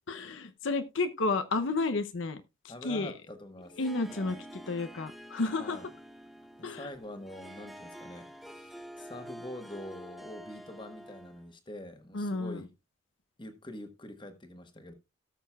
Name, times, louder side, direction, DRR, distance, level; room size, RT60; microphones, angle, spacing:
voice 1, 0.1-2.4 2.8-3.1 3.8-4.4 4.7-5.8 6.6-6.9 12.1-12.6, left 3 dB, 75° left, 9 dB, 0.7 m, -31 dB
voice 2, 2.7-3.8 4.1-4.4 5.6-5.9 6.6-12.7 13.4-14.9, left 1 dB, 25° left, 7 dB, 1.3 m, -45 dB
Harp, 3.6-11.5, equal, ahead, 0.7 m, -48 dB
18.0 x 6.6 x 2.3 m, 0.24 s
head